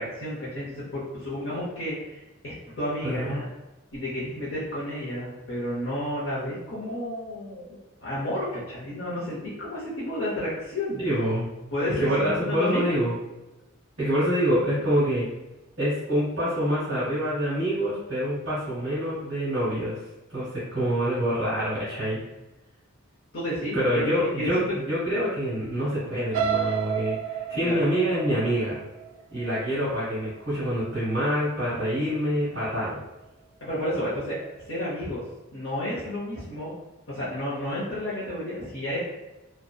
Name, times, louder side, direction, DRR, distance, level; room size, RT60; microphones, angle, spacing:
voice 1, 0.0-3.4 3.9-7.6 8.0-11.0 11.7-12.9 23.3-24.1 24.4-24.6 27.5-27.8 33.6-34.4 34.7-35.2 35.5-36.7 37.1-39.0, left 1 dB, 65° left, -9 dB, 0.7 m, -31 dB
voice 2, 3.0-3.3 11.0-11.5 12.0-13.1 14.0-15.3 15.8-20.0 20.3-22.2 23.7-28.8 29.3-33.0, equal, 65° right, -10 dB, 1.0 m, -26 dB
sound 1, 26.3-30.3 30.8-31.1 31.4-31.5, right 8 dB, 85° right, 0.3 m, -31 dB
2.7 x 2.1 x 2.2 m, 1.0 s
head